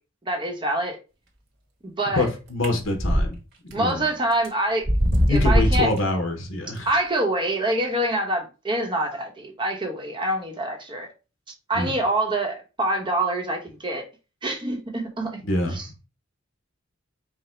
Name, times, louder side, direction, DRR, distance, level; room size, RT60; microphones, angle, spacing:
voice 1, 0.2-1.0 1.8-2.3 3.7-4.8 5.3-5.9 6.8-11.1 11.7-14.1 14.4-15.9, right 1 dB, 25° right, 1.0 m, -26 dB
voice 2, 2.2-3.4 3.6-4.1 5.3-6.9 11.7-11.9 15.4-15.9, left 2 dB, 70° left, 1.1 m, -25 dB
sound 1, 2.6-3.3 3.7-3.8 4.4-4.5 4.8-6.0, equal, 55° right, 1.4 m, -20 dB
4.9 x 2.2 x 4.4 m
head